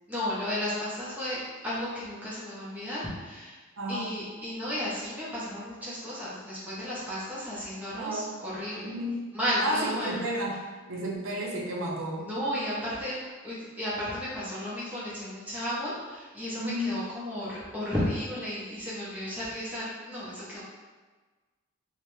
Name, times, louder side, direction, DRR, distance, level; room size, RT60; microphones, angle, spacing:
voice 1, 0.1-3.5 3.9-8.9 9.3-10.1 12.2-13.2 13.4-20.6, equal, 5° right, -9 dB, 0.6 m, -33 dB
voice 2, 3.8-4.1 8.0-8.3 8.8-9.2 9.6-10.6 10.9-12.2 16.6-17.0, equal, 60° right, -2 dB, 0.5 m, -32 dB
2.8 x 2.1 x 3.1 m, 1.3 s
head